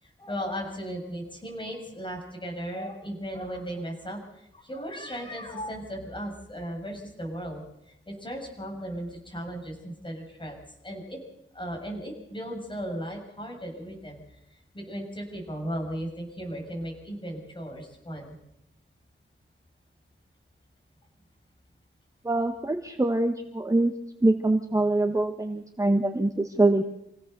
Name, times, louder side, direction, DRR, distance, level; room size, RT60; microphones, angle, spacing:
voice 1, 0.0-10.6 10.8-11.2 11.5-18.4, equal, 25° left, 1 dB, 6.9 m, -36 dB
voice 2, 22.2-23.9 24.2-26.8, right 2 dB, 15° right, 5 dB, 1.2 m, -24 dB
27.0 x 17.0 x 6.8 m, 0.84 s
wide cardioid pair, 130°, 21 cm